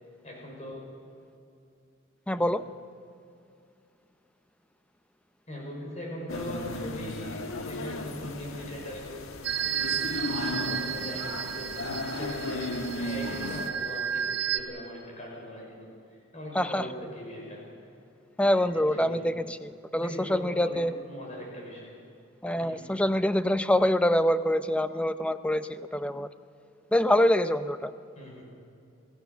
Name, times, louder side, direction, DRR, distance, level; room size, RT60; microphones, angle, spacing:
voice 1, 0.2-0.8 2.3-2.5 5.5-9.3 9.6-10.3 10.7-17.7 18.5-19.4 20.0-21.9 22.6-22.8 28.2-28.4, left 1 dB, 35° left, -1 dB, 5.5 m, -40 dB
voice 2, 2.3-2.6 16.5-16.9 18.4-21.0 22.4-26.3 26.9-27.9, left 1 dB, 5° left, 11 dB, 0.5 m, -25 dB
sound 1, 6.3-13.7, left 2 dB, 90° left, 1.4 m, -35 dB
sound 2, 9.4-14.6, right 8 dB, 55° right, 1.5 m, -32 dB
27.0 x 17.0 x 6.8 m, 2.5 s
head